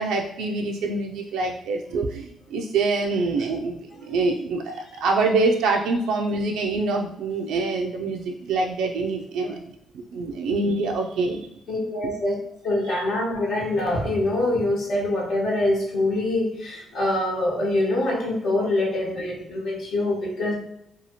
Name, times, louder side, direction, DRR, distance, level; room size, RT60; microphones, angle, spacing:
voice 1, 0.0-9.6 9.9-11.4, right 3 dB, 85° right, 1 dB, 0.3 m, -25 dB
voice 2, 11.7-12.4 12.6-20.5, left 1 dB, 70° left, -4 dB, 1.0 m, -24 dB
2.7 x 2.3 x 2.9 m, 0.75 s
cardioid pair, 90°, 0 cm